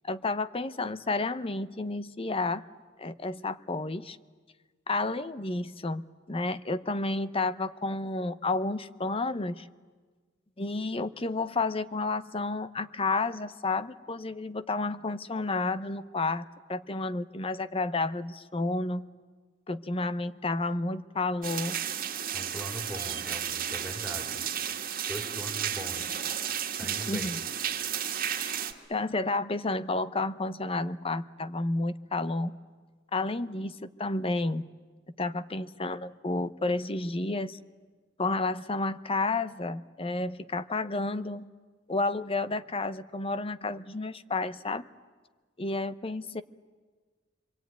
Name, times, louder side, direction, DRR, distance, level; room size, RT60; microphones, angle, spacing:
voice 1, 0.1-2.6 3.0-4.2 4.9-9.7 10.6-19.1 19.7-21.8 27.1-27.4 28.4-28.6 28.9-32.6 33.1-34.6 35.2-37.6 38.2-41.5 41.9-44.9 45.6-46.4, left 2 dB, 30° left, 13 dB, 0.8 m, -31 dB
sound 1, 21.4-28.7, right 9 dB, 50° right, 1.9 m, -33 dB
voice 2, 22.3-24.4 25.1-26.2 26.8-27.4, equal, 5° right, 1 dB, 3.3 m, -40 dB
25.5 x 24.5 x 9.3 m, 1.4 s
head